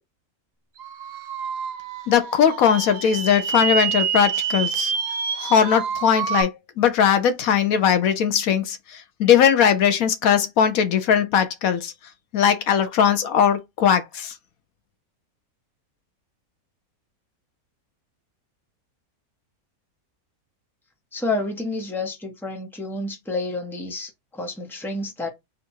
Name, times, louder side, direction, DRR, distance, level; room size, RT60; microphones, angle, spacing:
sound 1, 0.8-6.4, right 6 dB, 50° right, 0.9 m, -27 dB
voice 1, 2.1-4.9 5.4-11.9 12.3-14.3, left 8 dB, 75° left, 1.1 m, -19 dB
voice 2, 21.1-25.3, left 2 dB, ahead, 0.9 m, -29 dB
3.7 x 2.5 x 4.4 m
omnidirectional pair, 1.5 m